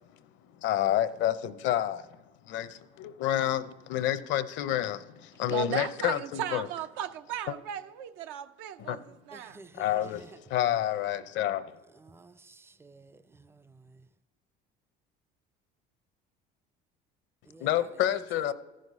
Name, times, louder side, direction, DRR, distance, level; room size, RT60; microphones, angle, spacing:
voice 1, 0.6-2.1 2.5-6.7 7.5-7.6 8.9-9.0 9.7-11.7 17.6-18.5, left 12 dB, 65° left, 0.6 m, -29 dB
voice 2, 5.5-9.6, right 10 dB, 80° right, 0.6 m, -36 dB
voice 3, 9.3-10.4 11.9-14.1 17.5-18.5, right 3 dB, 10° right, 0.4 m, -52 dB
14.0 x 6.5 x 5.4 m
supercardioid pair, 100°, 20 cm